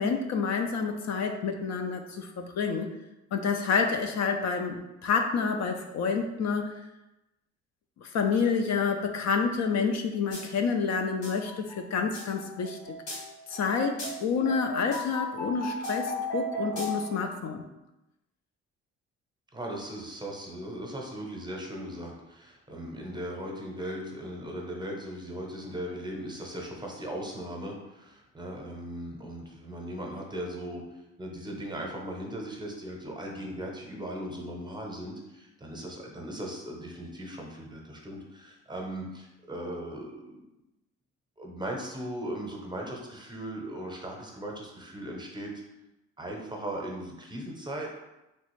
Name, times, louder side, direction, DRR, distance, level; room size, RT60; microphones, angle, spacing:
voice 1, 0.0-2.9 3.3-6.7 8.0-13.0 13.5-17.6, left 5 dB, 65° left, 5 dB, 0.4 m, -28 dB
sound 1, 10.3-10.4 10.8-17.2, left 1 dB, 80° left, 1.4 m, -36 dB
voice 2, 19.5-30.8 31.2-40.4 41.4-45.5 46.2-47.9, right 1 dB, 15° right, 0 dB, 0.7 m, -38 dB
3.2 x 2.4 x 3.0 m, 0.96 s
cardioid pair, 90°, 30 cm